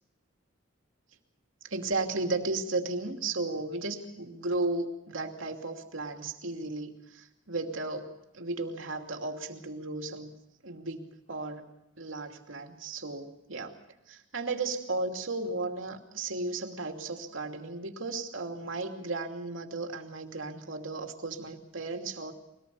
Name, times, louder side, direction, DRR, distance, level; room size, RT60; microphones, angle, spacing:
voice 1, 1.6-10.3 10.6-11.7 12.0-13.8 14.1-22.3, right 3 dB, 85° right, 4 dB, 2.7 m, -35 dB
23.5 x 19.0 x 7.0 m, 0.88 s
head